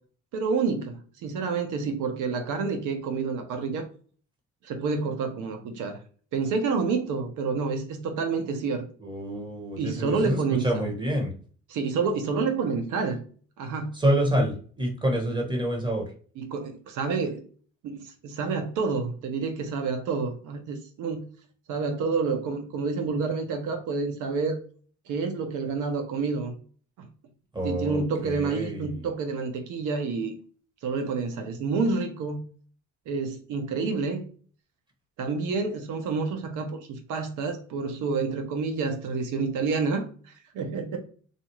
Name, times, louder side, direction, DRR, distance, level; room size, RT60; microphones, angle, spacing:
voice 1, 0.3-3.9 4.6-6.0 6.3-8.8 9.8-10.9 11.7-13.2 13.6-13.9 16.4-17.4 17.8-21.2 21.7-24.6 25.1-26.5 27.0-27.1 27.6-30.3 30.8-32.4 33.1-34.2 35.2-41.0, right 4 dB, 90° right, 0.7 m, -28 dB
voice 2, 9.0-11.3 13.9-16.0 27.5-29.1, right 1 dB, 15° right, 1.4 m, -27 dB
4.0 x 2.4 x 3.0 m
cardioid pair, 90°, 30 cm